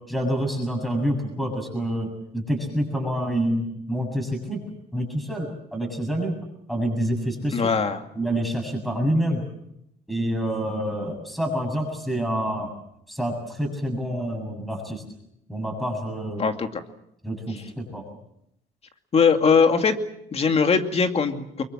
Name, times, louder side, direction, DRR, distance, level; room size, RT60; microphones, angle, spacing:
voice 1, 0.1-2.1 2.3-4.6 4.9-6.4 6.7-7.7 8.1-9.4 10.1-12.7 13.1-15.0 15.5-16.4 17.2-18.0, equal, ahead, 3 dB, 7.5 m, -27 dB
voice 2, 7.5-8.0 16.4-16.7 19.1-20.0 20.3-21.6, left 5 dB, 35° left, 6 dB, 2.5 m, -20 dB
24.5 x 22.5 x 7.5 m, 0.76 s
cardioid pair, 110°, 17 cm